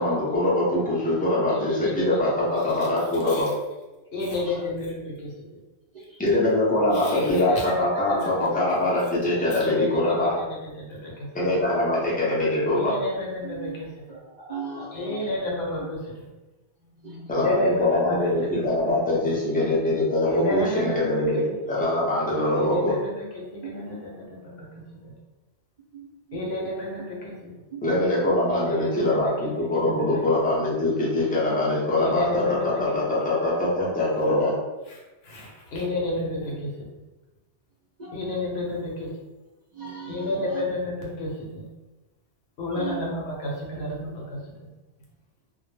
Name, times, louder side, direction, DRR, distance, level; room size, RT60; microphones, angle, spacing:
voice 1, 0.0-3.5 6.2-10.3 11.3-12.9 17.3-21.4 21.7-22.9 27.8-34.5, left 1 dB, 10° left, -7 dB, 0.5 m, -23 dB
voice 2, 1.5-3.5 4.1-5.6 6.9-8.5 9.4-11.6 12.7-14.2 14.9-16.3 17.4-18.6 20.2-21.6 22.5-25.1 26.3-27.5 28.5-30.4 32.0-33.2 34.9-37.0 38.1-39.1 40.1-41.7 42.6-44.7, left 2 dB, 65° left, -3 dB, 0.8 m, -31 dB
voice 3, 4.3-4.6 5.9-6.2 13.4-13.8 14.1-15.3 17.0-17.3 23.6-23.7 25.9-26.4 27.7-27.9 38.0-38.1 39.7-40.7 42.7-43.1, right 6 dB, 50° right, -8 dB, 0.5 m, -38 dB
2.2 x 2.0 x 3.2 m, 1.1 s
omnidirectional pair, 1.2 m